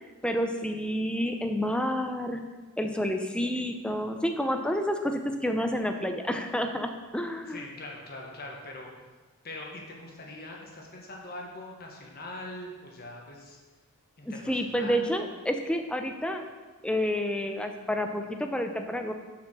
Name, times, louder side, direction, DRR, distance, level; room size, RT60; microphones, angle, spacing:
voice 1, 0.2-2.4 2.8-7.6 14.3-16.4 16.8-19.1, equal, 5° left, 5 dB, 0.5 m, -29 dB
voice 2, 7.5-8.9 9.4-13.6 14.2-15.1, left 2 dB, 45° left, 0 dB, 1.4 m, -42 dB
7.3 x 4.9 x 6.3 m, 1.3 s
head